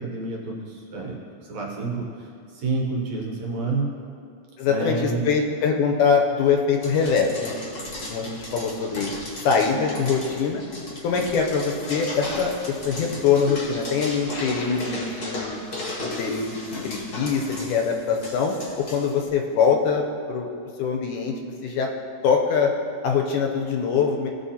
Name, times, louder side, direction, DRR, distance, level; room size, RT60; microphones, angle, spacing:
voice 1, 0.0-3.9 4.7-5.2, right 3 dB, 70° right, -2 dB, 1.9 m, -29 dB
voice 2, 4.6-7.5 8.1-9.1 9.4-10.6 11.0-15.6 16.0-20.5 20.8-21.9 22.2-22.7 23.0-24.3, left 5 dB, 80° left, 1 dB, 2.1 m, -23 dB
sound 1, 6.8-19.3, left 2 dB, 45° left, 1.3 m, -35 dB
16.5 x 5.6 x 2.8 m, 2.5 s
omnidirectional pair, 3.8 m